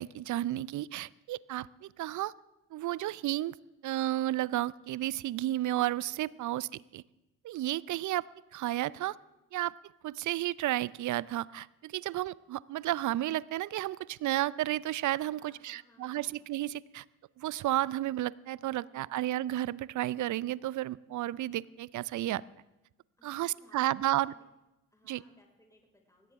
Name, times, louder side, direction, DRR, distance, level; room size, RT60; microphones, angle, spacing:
voice 1, 0.0-2.3 2.7-3.5 3.8-7.0 7.4-8.2 8.5-9.2 9.5-9.7 10.0-17.0 17.4-22.4 23.2-24.3 25.1-25.2, right 14 dB, 45° right, 21 dB, 0.6 m, -32 dB
voice 2, 6.2-6.6 15.4-16.5 18.8-19.5 23.2-24.5 24.9-26.3, left 1 dB, 10° left, 0 dB, 5.3 m, -64 dB
23.0 x 17.0 x 3.7 m, 0.95 s
hypercardioid pair, 50°, 40 cm